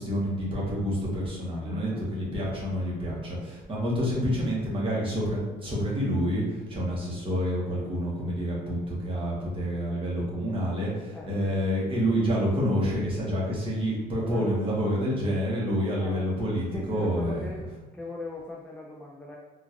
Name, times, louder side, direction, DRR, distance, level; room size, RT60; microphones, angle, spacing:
voice 1, 0.0-17.4, equal, 30° right, -5 dB, 1.3 m, -28 dB
voice 2, 1.5-2.0 11.1-11.5 14.2-14.9 15.9-16.3 16.7-17.7 17.9-19.4, left 1 dB, 5° left, -4 dB, 0.4 m, -40 dB
3.6 x 2.4 x 3.0 m, 1.2 s
cardioid pair, 110°, 17 cm